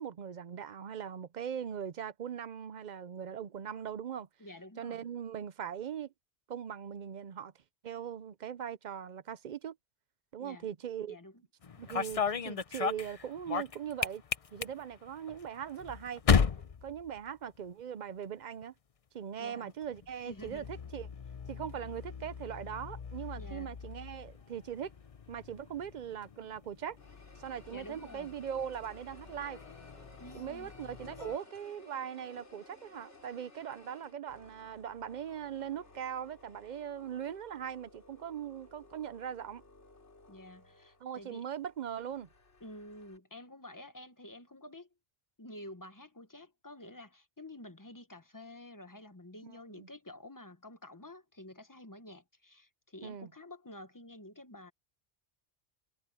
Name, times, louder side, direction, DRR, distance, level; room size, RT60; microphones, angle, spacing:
voice 1, 0.0-4.3 4.8-6.1 6.5-7.5 7.8-9.8 10.3-11.2 11.8-14.2 14.5-16.2 16.8-18.7 19.1-21.1 21.5-24.9 25.3-27.0 27.4-29.6 30.3-39.6 41.0-42.3 49.4-49.9 53.0-53.3, right 8 dB, 50° right, 0.6 m, -40 dB
voice 2, 4.4-5.0 10.4-10.7 11.0-11.4 19.4-19.7 20.2-20.7 23.4-23.7 27.7-28.3 30.2-30.7 40.3-41.4 42.6-44.9 45.4-54.7, left 1 dB, 15° left, 1.1 m, -50 dB
sound 1, 11.6-17.8 18.1-18.6 19.7-31.4, left 6 dB, 40° left, 0.6 m, -37 dB
sound 2, 23.8-26.6 27.0-43.2, left 2 dB, 75° left, 4.6 m, -59 dB
omnidirectional pair, 1.2 m